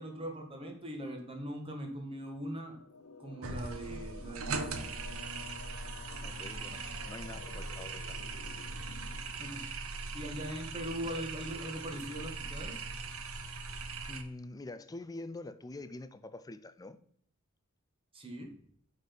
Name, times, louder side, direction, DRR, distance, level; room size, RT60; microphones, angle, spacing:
voice 1, 0.0-2.8 3.2-4.9 9.3-9.8 10.1-12.8 18.1-18.5, equal, 25° right, 2 dB, 1.7 m, -41 dB
sound 1, 2.7-9.2, left 4 dB, 85° left, 0.7 m, -52 dB
sound 2, 3.4-14.2, right 3 dB, 80° right, 0.9 m, -40 dB
voice 2, 6.2-6.8 7.1-8.2 11.0-11.2 14.0-17.0, left 2 dB, 15° left, 12 dB, 0.5 m, -45 dB
9.2 x 4.1 x 5.2 m, 0.64 s
head